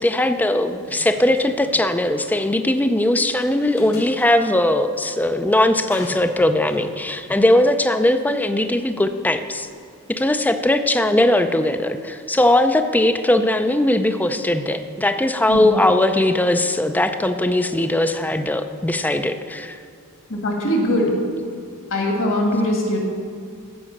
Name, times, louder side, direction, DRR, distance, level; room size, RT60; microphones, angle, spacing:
voice 1, 0.0-9.7 10.1-19.8, left 1 dB, 10° left, 9 dB, 0.4 m, -19 dB
sound 1, 0.8-1.9 2.2-2.3 3.4-4.5 5.9-6.9, left 1 dB, 80° left, 2.9 m, -40 dB
voice 2, 20.3-21.2 21.9-23.0, left 1 dB, 60° left, 0 dB, 2.1 m, -21 dB
15.0 x 5.0 x 6.5 m, 2.3 s
head